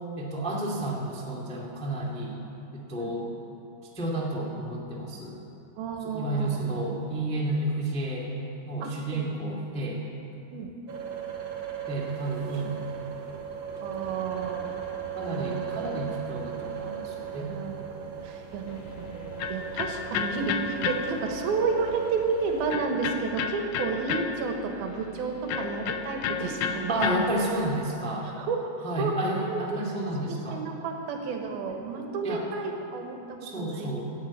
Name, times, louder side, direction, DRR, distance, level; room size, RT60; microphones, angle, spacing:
voice 1, 0.2-2.3 2.7-3.3 3.9-5.4 6.0-8.3 8.6-10.0 11.9-12.7 15.1-17.5 26.9-28.3 28.8-30.6 32.2-32.4 33.4-34.0, right 1 dB, 10° left, -3 dB, 0.3 m, -31 dB
voice 2, 5.8-6.7 8.8-9.2 10.5-10.7 13.2-13.4 13.8-14.7 15.3-15.6 17.3-17.8 18.2-27.0 28.2-29.8 30.3-33.9, right 4 dB, 70° right, 3 dB, 2.9 m, -32 dB
sound 1, 10.9-22.7, right 7 dB, 90° right, 1.0 m, -37 dB
Electric guitar, 18.7-27.8, left 7 dB, 80° left, 2.0 m, -34 dB
15.0 x 9.6 x 8.4 m, 2.8 s
omnidirectional pair, 4.8 m